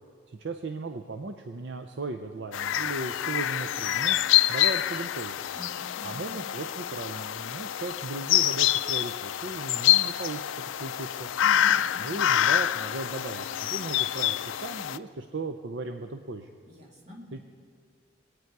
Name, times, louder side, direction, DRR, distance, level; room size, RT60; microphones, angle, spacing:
voice 1, 0.3-4.2 4.5-5.5 6.0-10.4 10.8-11.3 12.0-16.5 17.3-17.5, right 3 dB, 60° right, 6 dB, 0.6 m, -36 dB
sound 1, 2.5-15.0, left 12 dB, 75° left, 0.4 m, -26 dB
voice 2, 5.5-6.4 11.4-12.1 16.7-17.2, left 1 dB, 35° right, -3 dB, 2.6 m, -45 dB
22.5 x 9.1 x 4.7 m, 2.1 s
head